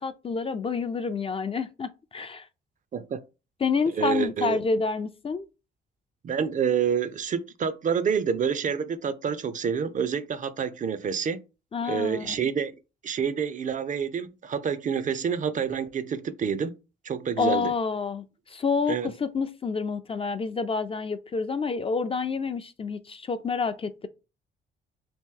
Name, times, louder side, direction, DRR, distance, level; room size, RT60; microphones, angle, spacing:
voice 1, 0.0-2.5 3.6-5.5 11.7-12.4 17.4-24.1, left 5 dB, 30° left, 0.4 m, -28 dB
voice 2, 4.0-4.6 6.2-11.4 11.8-12.7 13.0-16.7 17.0-17.7 18.9-19.1, right 7 dB, 40° right, 0.4 m, -28 dB
2.9 x 2.6 x 3.6 m
cardioid pair, 90°, 20 cm